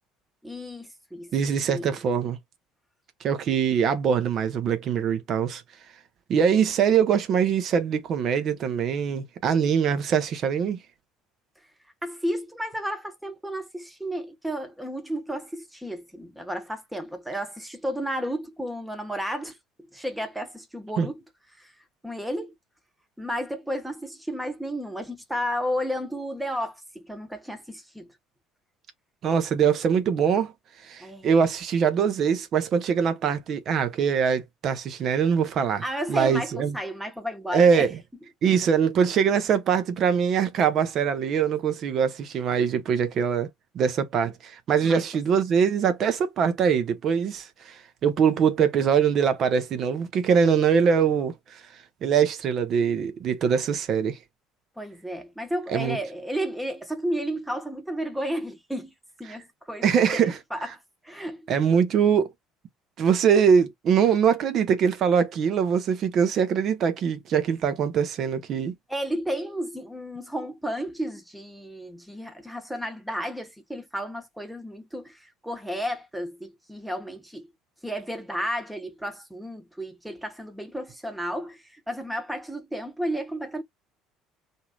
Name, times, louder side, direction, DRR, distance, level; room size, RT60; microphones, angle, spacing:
voice 1, 0.4-1.3 1.7-2.0 12.0-19.6 19.9-21.2 21.6-21.7 22.0-22.5 23.2-28.1 31.0-31.4 35.8-37.9 44.8-45.0 54.8-58.9 59.2-59.8 60.1-60.7 61.0-61.5 68.9-77.5 77.8-83.6, equal, 5° right, 1.1 m, -32 dB
voice 2, 1.3-2.4 3.2-5.6 6.3-10.8 21.0-21.1 29.2-30.5 30.8-35.8 36.1-36.8 37.5-38.0 38.4-43.5 43.7-51.6 52.0-54.2 55.7-56.0 59.8-60.4 61.5-62.3 63.0-68.7, right 7 dB, 50° right, 0.8 m, -23 dB
2.8 x 2.7 x 2.3 m
hypercardioid pair, 60°, 0 cm